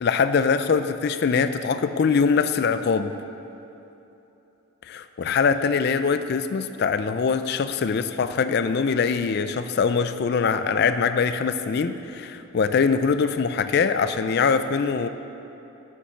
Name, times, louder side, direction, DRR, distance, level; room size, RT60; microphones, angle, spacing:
voice 1, 0.0-3.1 4.9-15.1, left 5 dB, 50° left, 11 dB, 0.3 m, -23 dB
7.2 x 7.0 x 6.0 m, 3.0 s
head